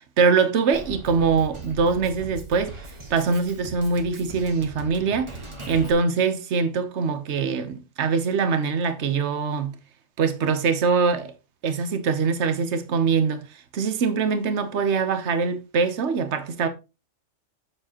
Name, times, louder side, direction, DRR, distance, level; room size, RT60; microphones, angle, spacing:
voice 1, 0.0-5.3 5.7-9.7 10.2-11.3 11.6-16.7, right 5 dB, 60° right, 1.2 m, -23 dB
Drum kit, 0.7-5.9, right 2 dB, 25° right, 1.4 m, -39 dB
7.3 x 6.8 x 2.9 m
omnidirectional pair, 1.4 m